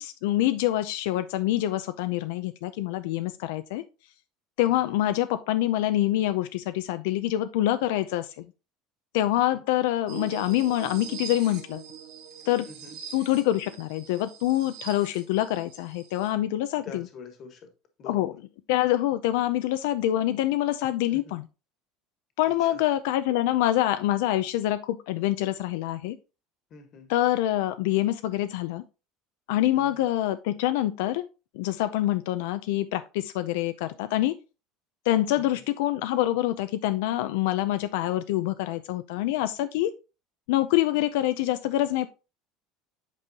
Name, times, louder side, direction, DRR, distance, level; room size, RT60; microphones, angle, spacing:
voice 1, 0.0-3.8 4.6-8.5 9.1-11.8 12.5-12.7 13.1-17.0 18.1-18.3 18.7-21.4 22.4-26.2 27.1-28.8 29.5-31.2 31.5-34.4 35.1-39.9 40.5-42.1, left 14 dB, 85° left, 10 dB, 0.5 m, -26 dB
sound 1, 10.1-16.3, right 8 dB, 50° right, 2.0 m, -43 dB
voice 2, 12.7-13.0 16.8-17.7 18.0-18.4 21.1-21.4 22.6-22.8 26.7-27.1 29.7-30.1 35.3-35.6, left 5 dB, 35° left, 7 dB, 1.4 m, -45 dB
8.3 x 5.3 x 2.9 m, 0.30 s
cardioid pair, 175°, 0 cm